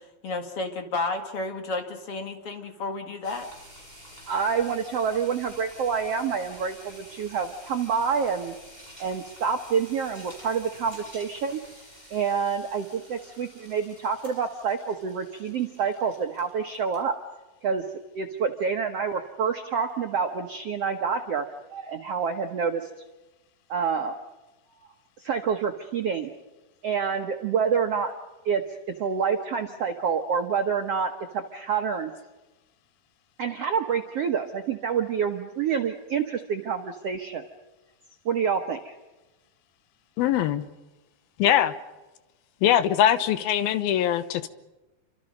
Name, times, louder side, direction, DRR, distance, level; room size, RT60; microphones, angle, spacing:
voice 1, 0.2-3.5, left 3 dB, 45° left, 5 dB, 2.4 m, -31 dB
sound 1, 3.2-17.1, equal, 10° left, 7.1 m, -49 dB
voice 2, 4.3-8.5 9.0-11.6 12.1-17.1 17.6-17.8 18.1-21.4 21.7-22.9 23.7-24.1 25.2-26.3 26.8-28.1 28.4-32.1 33.4-37.4 38.2-38.9, right 6 dB, 70° right, 5 dB, 1.5 m, -27 dB
voice 3, 40.2-40.7 41.4-41.7 42.6-44.5, left 11 dB, 80° left, 12 dB, 2.8 m, -22 dB
29.0 x 25.0 x 5.4 m, 1.1 s
omnidirectional pair, 4.4 m